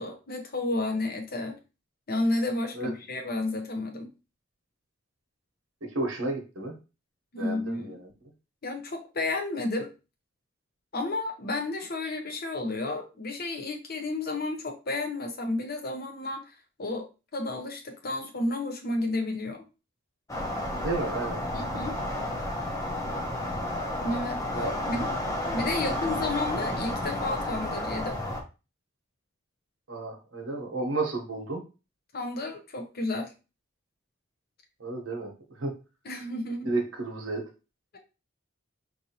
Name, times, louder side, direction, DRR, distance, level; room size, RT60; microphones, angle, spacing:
voice 1, 0.0-1.6 2.1-4.1 7.3-8.0 8.6-9.9 10.9-19.6 21.5-21.9 24.0-25.1 25.5-28.2 32.1-33.3 36.0-36.7 37.9-38.0, left 2 dB, 50° left, 3 dB, 0.8 m, -32 dB
voice 2, 5.9-6.7 7.4-8.1 20.7-21.4 24.5-24.7 25.9-26.0 29.9-31.6 34.8-35.7 36.6-37.5, right 2 dB, 85° right, 2 dB, 1.0 m, -32 dB
sound 1, 20.3-28.4, left 1 dB, 15° left, 0.7 m, -31 dB
4.5 x 2.7 x 2.8 m, 0.30 s
head